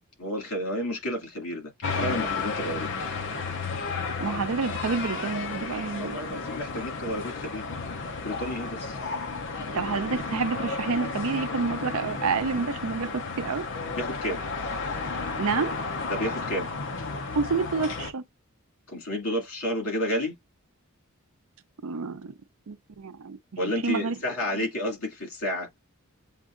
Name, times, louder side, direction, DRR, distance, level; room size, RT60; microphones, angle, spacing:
voice 1, 0.2-2.9 6.0-7.6 8.2-9.0 14.0-14.4 16.1-16.7 18.9-20.3 23.6-25.7, equal, 80° left, 2.2 m, -31 dB
sound 1, 1.8-18.1, left 4 dB, 55° left, 0.6 m, -33 dB
voice 2, 4.2-6.2 9.7-13.6 15.4-15.8 17.3-18.2 21.8-22.3 22.7-23.4 23.7-24.2 24.5-24.6, right 4 dB, 75° right, 0.6 m, -29 dB
7.2 x 2.5 x 2.5 m
head